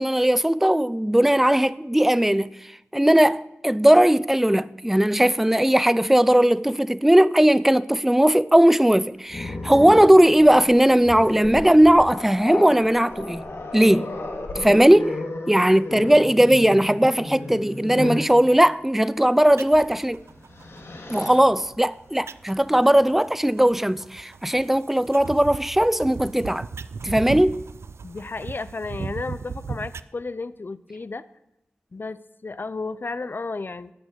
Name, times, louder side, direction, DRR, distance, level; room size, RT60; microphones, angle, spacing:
voice 1, 0.0-2.6 2.9-13.5 13.7-14.1 14.6-15.2 15.5-20.2 21.1-26.7 27.0-27.6, right 1 dB, 5° right, 0.5 m, -18 dB
Growling, 9.3-18.3 19.7-19.9 20.3-21.4, left 2 dB, 75° left, 2.4 m, -34 dB
sound 1, 19.5-30.0, right 5 dB, 90° right, 0.5 m, -38 dB
voice 2, 28.0-31.2 31.9-33.9, left 3 dB, 50° left, 0.6 m, -33 dB
12.5 x 6.8 x 9.7 m
wide cardioid pair, 55°, 4 cm